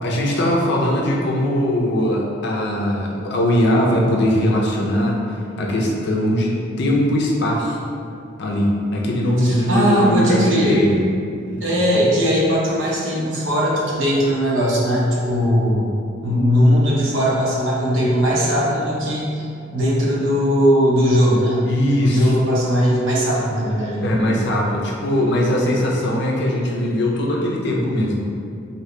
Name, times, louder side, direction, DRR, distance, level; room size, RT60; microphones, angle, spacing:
voice 1, 0.0-5.2 5.6-7.8 8.4-11.0 11.5-12.0 21.6-22.3 24.0-28.3, equal, 65° left, -2 dB, 0.5 m, -20 dB
voice 2, 9.4-10.9 11.6-15.9 16.2-19.5 19.7-21.7 21.9-24.5, equal, 80° right, -5 dB, 0.8 m, -19 dB
2.9 x 2.8 x 3.2 m, 2.5 s
head